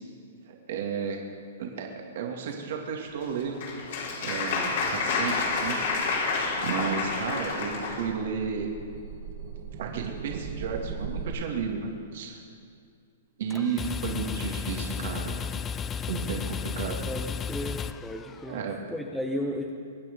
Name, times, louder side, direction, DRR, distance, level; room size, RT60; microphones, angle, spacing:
voice 1, 0.5-1.2 1.6-1.9 2.1-3.6 4.2-5.8 6.6-8.7 9.8-12.4 13.4-15.3 16.1-17.0 18.5-18.8, right 6 dB, 65° right, 1 dB, 2.3 m, -33 dB
Applause, 3.2-8.0, left 4 dB, 60° left, 3.8 m, -29 dB
sound 1, 5.0-11.3, right 6 dB, 45° right, 2.0 m, -41 dB
sound 2, 13.5-18.7, left 7 dB, 20° left, 0.4 m, -34 dB
voice 2, 17.1-18.6 18.9-19.7, equal, ahead, 0 dB, 1.0 m, -34 dB
23.5 x 9.5 x 5.4 m, 2.3 s
hypercardioid pair, 130°, 0 cm